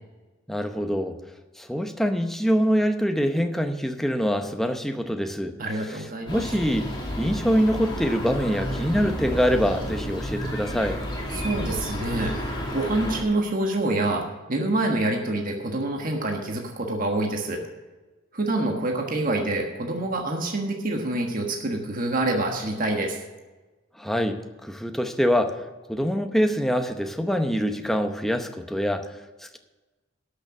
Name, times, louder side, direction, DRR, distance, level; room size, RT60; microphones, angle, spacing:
voice 1, 0.5-1.2 1.6-5.5 5.9-6.0 6.3-6.9 7.2-11.0 24.0-25.6 25.9-29.1 29.4-29.6, equal, ahead, 6 dB, 0.8 m, -24 dB
voice 2, 5.6-6.4 11.3-17.6 18.3-23.2, right 2 dB, 40° right, 2 dB, 1.4 m, -26 dB
sound 1, 6.3-13.2, equal, 20° left, 2.3 m, -31 dB
12.5 x 6.7 x 6.0 m, 1.2 s
head